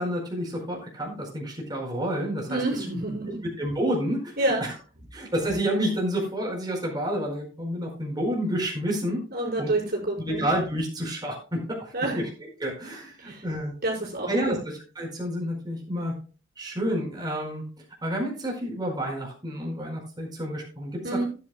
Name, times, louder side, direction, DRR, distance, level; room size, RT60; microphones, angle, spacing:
voice 1, 0.0-2.6 3.6-4.3 5.1-9.2 9.6-9.7 10.2-12.2 12.6-13.7 14.3-16.1 16.6-17.6 18.0-21.0, equal, 25° right, -1 dB, 4.8 m, -29 dB
voice 2, 2.5-3.5 4.4-4.7 9.3-10.5 11.9-12.3 13.2-13.5 13.8-14.6 21.0-21.3, right 2 dB, 55° right, -1 dB, 5.2 m, -28 dB
16.0 x 10.5 x 2.2 m, 0.34 s
head